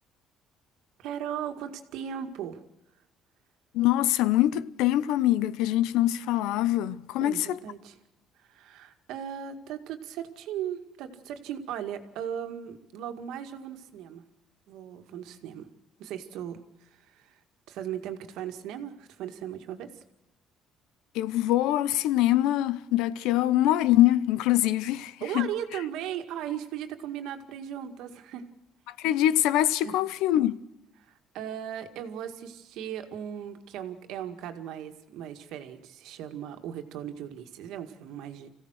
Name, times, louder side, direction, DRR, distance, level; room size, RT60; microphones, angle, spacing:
voice 1, 1.0-2.6 7.2-8.0 8.4-14.2 14.7-15.7 16.0-17.4 17.7-20.0 25.2-28.5 29.8-30.0 31.0-38.5, right 9 dB, 75° right, 2.0 m, -37 dB
voice 2, 3.7-7.6 21.1-25.5 29.0-30.6, left 14 dB, 90° left, 0.8 m, -24 dB
26.5 x 16.0 x 6.5 m
cardioid pair, 140°, 0 cm